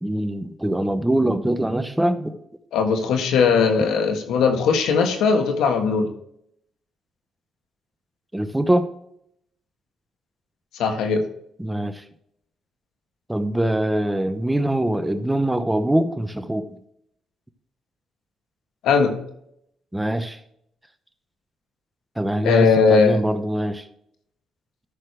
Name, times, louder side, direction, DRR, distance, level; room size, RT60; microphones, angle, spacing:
voice 1, 0.0-2.4 8.3-8.9 11.6-12.0 13.3-16.7 19.9-20.4 22.2-23.9, right 1 dB, 10° right, 10 dB, 0.9 m, -23 dB
voice 2, 2.7-6.1 10.8-11.2 18.8-19.2 22.4-23.2, left 5 dB, 85° left, 6 dB, 1.5 m, -19 dB
13.5 x 6.5 x 3.3 m, 0.74 s
cardioid pair, 90°, 0 cm